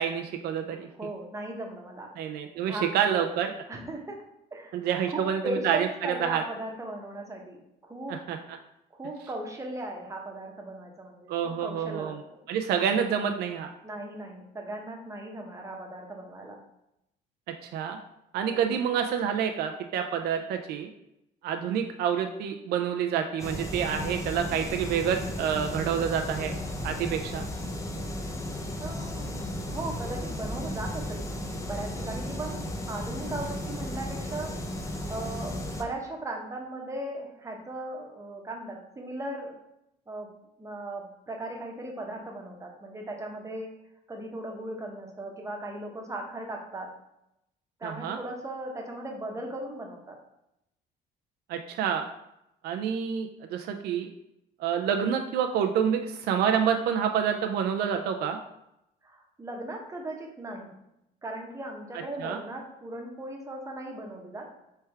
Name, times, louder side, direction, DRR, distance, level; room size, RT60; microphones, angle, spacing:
voice 1, 0.0-0.9 2.2-3.5 4.7-6.4 8.1-8.4 11.3-12.2 12.5-13.7 17.6-18.0 18.3-20.9 21.4-26.5 26.8-27.4 47.8-48.2 51.5-52.1 52.6-54.1 54.6-58.4 62.2-62.4, right 8 dB, 70° right, 5 dB, 0.4 m, -28 dB
voice 2, 1.0-2.1 2.7-2.9 3.7-4.2 4.5-4.8 5.1-8.2 8.9-12.4 13.8-16.6 28.8-29.4 29.7-31.3 31.6-34.5 34.9-39.6 40.1-40.3 40.6-43.7 44.1-46.9 47.8-50.2 59.0-60.8 61.2-64.5, right 1 dB, 20° right, 0 dB, 0.9 m, -37 dB
sound 1, 23.4-35.8, left 1 dB, 20° left, 0.6 m, -35 dB
3.4 x 3.3 x 4.5 m, 0.84 s
cardioid pair, 110°, 17 cm